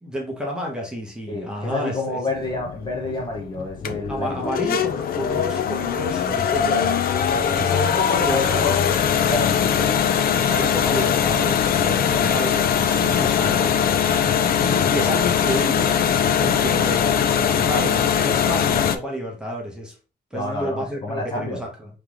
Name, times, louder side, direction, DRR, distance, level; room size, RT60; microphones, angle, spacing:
voice 1, 0.0-2.2 4.1-7.1 7.6-8.8 9.8-10.0 10.3-13.8 14.6-16.0 16.4-19.9 20.3-21.9, equal, 5° right, 1.0 m, -30 dB
voice 2, 1.3-4.5 7.3-8.8 9.2-9.8 20.3-21.6, left 2 dB, 25° left, 1.0 m, -29 dB
sound 1, 2.4-19.0, left 8 dB, 65° left, 0.5 m, -21 dB
3.5 x 3.2 x 3.5 m
wide cardioid pair, 160°, 17 cm